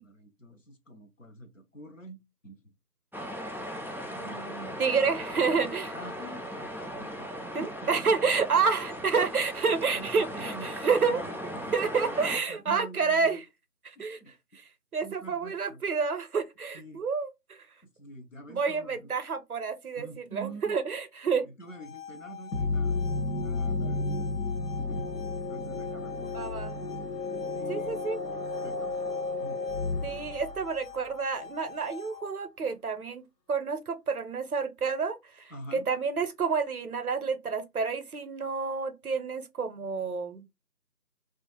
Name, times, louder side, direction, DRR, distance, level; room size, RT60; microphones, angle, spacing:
voice 1, 0.0-2.7 5.9-7.9 9.2-9.3 9.7-10.8 11.1-13.4 14.0-14.3 15.0-15.8 16.7-17.0 18.0-19.1 20.0-20.8 21.4-23.0 23.4-24.3 24.8-25.1 25.5-26.9 27.6-28.2 28.6-29.0 29.4-29.6 35.5-35.9, right 1 dB, 55° left, 0.6 m, -46 dB
sound 1, 3.1-12.4, equal, 5° right, 0.3 m, -38 dB
voice 2, 4.0-5.9 7.5-11.2 11.7-13.4 13.8-14.2 14.5-14.6 14.9-17.6 18.5-21.5 26.3-26.8 27.7-28.2 30.0-33.2 33.5-40.4, right 5 dB, 65° right, 0.5 m, -29 dB
sound 2, 21.6-32.6, left 7 dB, 70° left, 1.3 m, -45 dB
sound 3, 22.5-31.2, left 3 dB, 90° left, 0.7 m, -32 dB
2.4 x 2.4 x 2.8 m
figure-of-eight pair, 170°, 48 cm